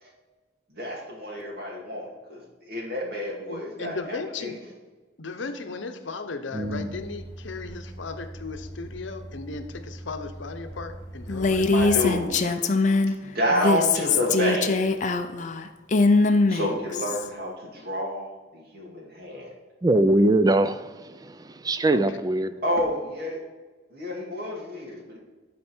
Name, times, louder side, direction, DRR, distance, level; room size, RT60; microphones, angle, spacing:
voice 1, 0.7-4.5 11.4-12.3 13.2-15.0 16.5-19.6 22.6-23.4 23.9-25.2, equal, 55° right, 2.2 m, -29 dB
voice 2, 3.5-4.6 5.2-11.7 21.9-22.2, left 4 dB, 80° left, 0.8 m, -36 dB
voice 3, 6.5-6.9 19.8-21.3 21.6-22.5, right 1 dB, 20° right, 0.4 m, -22 dB
sound 1, 6.6-12.3, right 1 dB, 20° left, 2.5 m, -40 dB
Female speech woman speaking, 11.3-13.1 13.5-17.3, left 3 dB, 40° left, 0.5 m, -22 dB
11.5 x 4.3 x 4.4 m
head